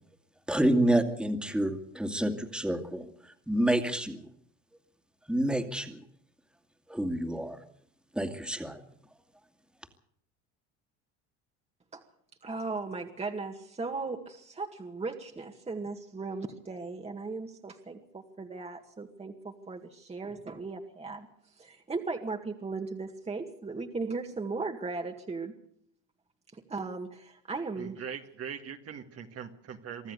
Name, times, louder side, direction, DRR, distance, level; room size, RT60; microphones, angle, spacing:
voice 1, 0.5-4.2 5.3-6.0 6.9-7.6 8.1-8.8, right 1 dB, 5° right, 6 dB, 2.4 m, -28 dB
voice 2, 12.4-21.3 21.6-25.5 26.5-28.0, right 3 dB, 20° right, 3 dB, 2.0 m, -37 dB
voice 3, 27.8-30.1, right 7 dB, 45° right, 5 dB, 1.9 m, -41 dB
25.0 x 13.0 x 8.3 m, 0.66 s
supercardioid pair, 95°, 35 cm